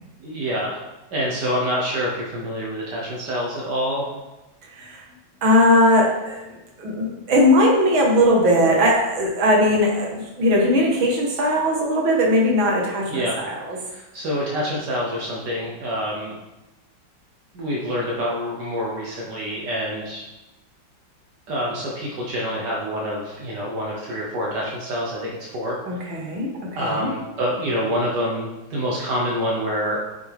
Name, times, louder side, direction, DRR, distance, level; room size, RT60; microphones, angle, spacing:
voice 1, 0.2-0.8 1.1-4.1 13.1-13.4 13.9-16.4 17.5-20.2 21.5-26.2 26.7-30.0, equal, 65° right, -3 dB, 1.6 m, -26 dB
voice 2, 5.4-6.4 6.8-13.5 25.9-27.1, left 1 dB, 85° right, -1 dB, 2.3 m, -19 dB
8.2 x 6.2 x 3.5 m, 1.0 s
omnidirectional pair, 2.1 m